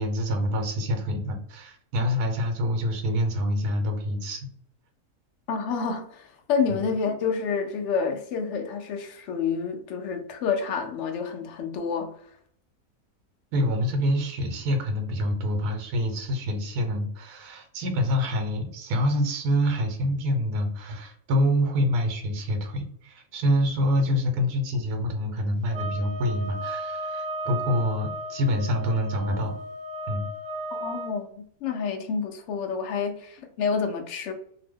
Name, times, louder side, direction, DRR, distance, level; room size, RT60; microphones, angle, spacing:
voice 1, 0.0-4.5 6.7-6.8 13.5-29.5 30.1-30.3, equal, 90° right, 1.1 m, -26 dB
voice 2, 5.5-12.1 30.8-34.3, left 5 dB, 70° left, 0.7 m, -28 dB
sound 1, 25.7-31.1, right 1 dB, 45° right, 0.6 m, -35 dB
2.8 x 2.1 x 3.4 m
omnidirectional pair, 1.6 m